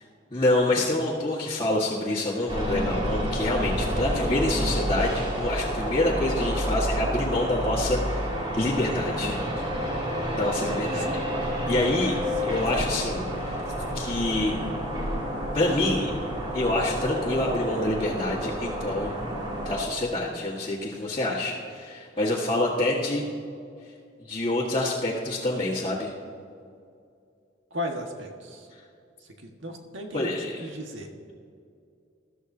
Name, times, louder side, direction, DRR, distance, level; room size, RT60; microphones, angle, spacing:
voice 1, 0.3-9.4 10.4-11.1 11.4-13.6 13.9-14.6 15.5-16.1 16.5-19.1 19.6-23.2 24.2-26.1 30.1-30.6, left 1 dB, 25° left, -9 dB, 1.6 m, -27 dB
sound 1, 2.5-19.8, equal, 30° right, 2.6 m, -29 dB
voice 2, 9.1-9.6 10.9-11.2 12.4-12.6 27.7-28.7 29.4-30.3 30.6-31.1, left 1 dB, 80° right, 2 dB, 1.5 m, -36 dB
21.0 x 13.5 x 2.7 m, 2.4 s
head